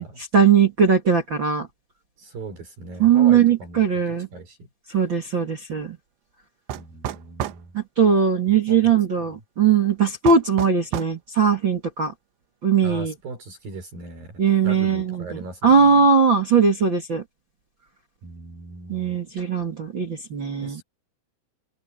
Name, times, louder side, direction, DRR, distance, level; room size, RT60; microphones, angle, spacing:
voice 1, 0.3-1.7 3.0-4.3 4.9-6.0 7.7-12.1 12.6-13.1 14.4-15.2 15.6-17.2 18.9-20.8, right 6 dB, 35° right, 2.1 m, -19 dB
voice 2, 2.2-3.8 4.3-4.7 6.8-7.8 8.4-8.9 9.2-9.4 12.8-16.0 18.2-19.2 20.6-20.8, right 2 dB, 55° right, 7.0 m, -39 dB
sound 1, 6.7-7.7 10.3-11.2, right 11 dB, 90° right, 3.5 m, -30 dB
open air
omnidirectional pair, 5.0 m